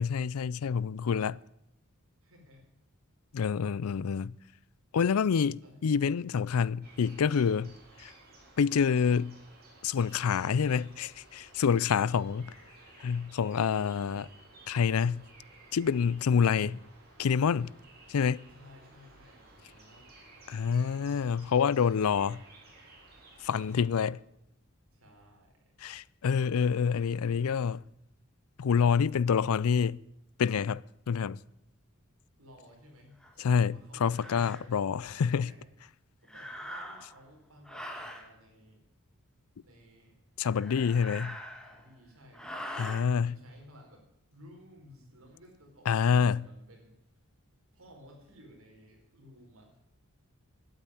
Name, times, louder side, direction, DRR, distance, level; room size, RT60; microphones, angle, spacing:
voice 1, 0.0-1.4 3.3-4.3 4.9-7.7 8.0-8.1 8.6-9.3 9.8-12.5 13.0-14.3 14.7-15.2 15.7-16.8 17.2-17.7 18.1-18.4 20.5-22.4 23.4-24.2 25.8-27.8 28.6-30.0 30.4-31.4 33.4-35.5 40.4-41.4 42.8-43.4 45.9-46.5, left 6 dB, 80° left, 0.4 m, -27 dB
voice 2, 2.2-2.7 5.6-5.8 18.5-20.6 23.8-24.3 24.9-25.7 32.4-35.7 36.2-38.8 39.6-41.2 41.6-42.7 43.2-46.9 47.7-49.8, equal, 70° right, 4.8 m, -56 dB
sound 1, 6.8-23.8, right 2 dB, 50° right, 4.6 m, -56 dB
sound 2, 33.2-33.3 34.1-34.6 36.2-37.2 37.6-38.3 40.4-41.9 42.3-43.0, equal, 5° left, 1.7 m, -42 dB
12.5 x 9.0 x 9.6 m
head